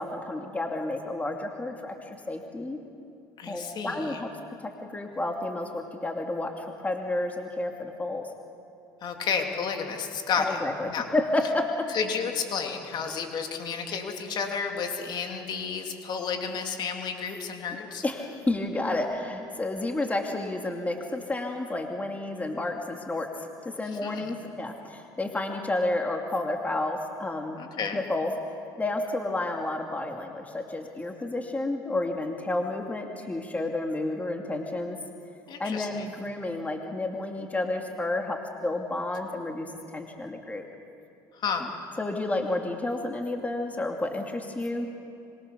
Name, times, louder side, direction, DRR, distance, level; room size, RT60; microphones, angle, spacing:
voice 1, 0.0-2.8 3.5-8.3 10.4-11.9 18.0-27.6 27.9-28.3 28.8-35.0 35.6-40.6 42.0-44.9, left 2 dB, 15° left, 2 dB, 2.6 m, -31 dB
voice 2, 3.4-4.2 9.0-10.6 10.9-11.1 11.9-18.0 24.0-24.3 27.6-28.0 35.5-36.1 41.3-41.7, left 6 dB, 55° left, 3 dB, 3.2 m, -31 dB
25.5 x 23.0 x 6.9 m, 2.7 s
supercardioid pair, 85°, 9 cm